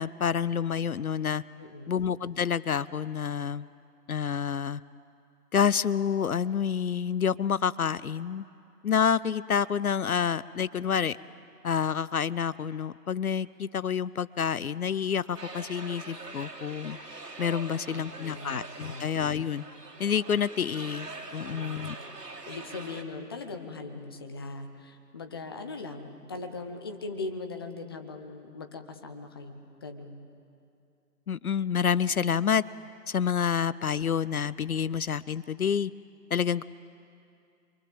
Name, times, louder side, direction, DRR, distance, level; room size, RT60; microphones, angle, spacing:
voice 1, 0.0-1.4 1.9-3.7 4.1-4.8 5.5-8.5 8.8-11.2 11.6-17.0 17.4-19.6 20.0-22.0 31.3-32.6 33.1-35.9 36.3-36.6, left 7 dB, 65° left, 19 dB, 0.6 m, -28 dB
voice 2, 1.6-2.0 17.7-19.1 21.4-21.9 22.5-30.2, left 3 dB, 15° left, 6 dB, 0.8 m, -40 dB
sound 1, 15.3-23.0, right 3 dB, 90° right, 3.2 m, -43 dB
27.5 x 23.5 x 7.6 m, 2.5 s
figure-of-eight pair, 150°, 47 cm